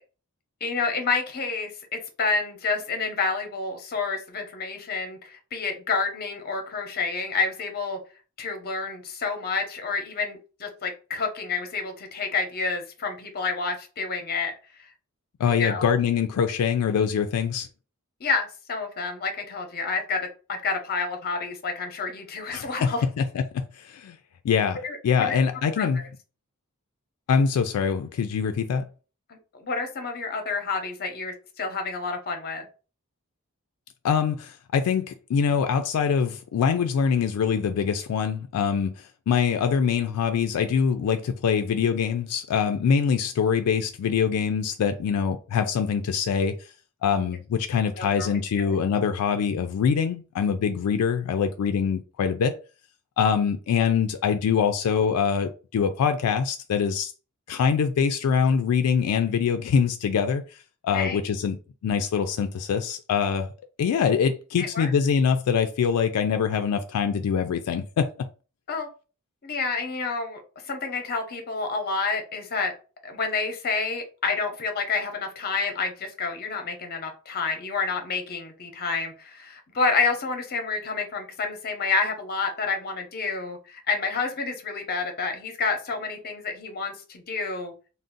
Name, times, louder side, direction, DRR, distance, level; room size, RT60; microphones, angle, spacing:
voice 1, 0.6-8.0 8.4-14.5 14.8-14.9 15.5-15.9 18.2-20.2 20.5-23.0 24.8-25.4 25.8-25.9 29.3-32.6 47.1-47.3 48.0-48.7 60.9-61.2 64.6-64.9 68.7-68.9 69.4-72.7 73.0-87.7, left 4 dB, 45° left, 0.7 m, -29 dB
voice 2, 15.4-17.7 22.5-24.2 24.4-26.0 27.3-28.9 34.0-46.6 47.0-52.6 53.2-57.1 57.5-60.4 60.8-61.6 61.8-63.5 63.8-68.3, left 6 dB, 80° left, 0.3 m, -24 dB
2.5 x 2.0 x 3.7 m
head